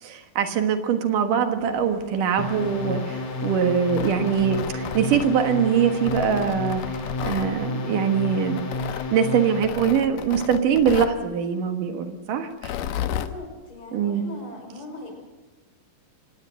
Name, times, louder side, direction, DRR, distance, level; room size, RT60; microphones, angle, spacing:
voice 1, 0.0-6.8 7.2-8.7 9.1-12.7 13.9-14.2, right 7 dB, 75° right, 6 dB, 3.1 m, -23 dB
sound 1, 1.6-6.6, right 2 dB, 30° right, 5.4 m, -45 dB
sound 2, 2.4-9.9, left 3 dB, 55° left, 3.5 m, -31 dB
Tearing, 3.8-5.5 6.0-7.5 8.6-9.1 9.6-11.2 12.5-13.3, left 10 dB, 85° left, 2.6 m, -33 dB
voice 2, 12.9-15.1, left 2 dB, 40° left, 1 dB, 6.7 m, -40 dB
26.0 x 18.0 x 6.5 m, 1.2 s
omnidirectional pair, 3.8 m